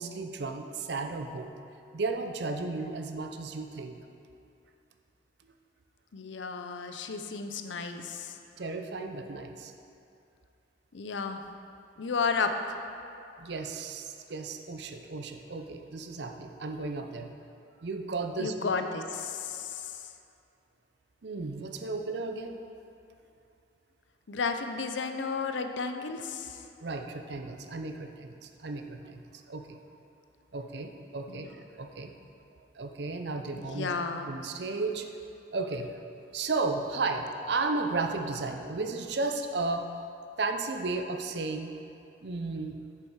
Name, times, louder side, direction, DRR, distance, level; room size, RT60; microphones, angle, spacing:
voice 1, 0.0-1.5 1.9-4.0 8.6-9.7 13.4-17.3 17.8-18.7 21.2-22.6 26.8-29.8 30.5-32.1 32.7-33.9 34.3-35.1 35.5-35.9 36.3-39.9 40.4-41.7 42.2-42.8, right 3 dB, 65° right, 6 dB, 0.6 m, -34 dB
voice 2, 6.1-8.4 10.9-11.4 12.0-12.5 18.4-20.0 24.3-26.6 31.3-31.5 33.5-34.3, left 5 dB, 80° left, 7 dB, 0.6 m, -33 dB
8.6 x 6.9 x 4.7 m, 2.6 s
head